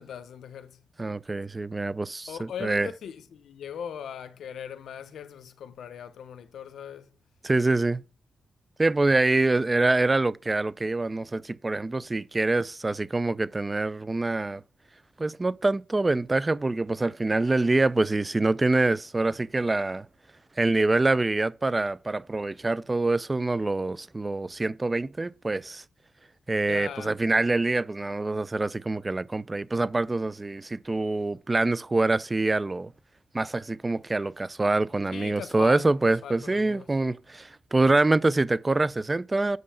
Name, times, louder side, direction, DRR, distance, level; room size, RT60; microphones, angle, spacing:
voice 1, 0.0-0.8 2.3-7.1 26.7-27.2 35.1-36.9, left 8 dB, 85° left, 0.8 m, -40 dB
voice 2, 1.0-2.3 2.6-2.9 7.4-8.0 8.8-14.6 15.2-20.1 20.6-25.8 26.5-32.9 33.3-39.6, right 2 dB, 25° right, 0.4 m, -25 dB
7.7 x 5.4 x 5.7 m
cardioid pair, 80°, 0 cm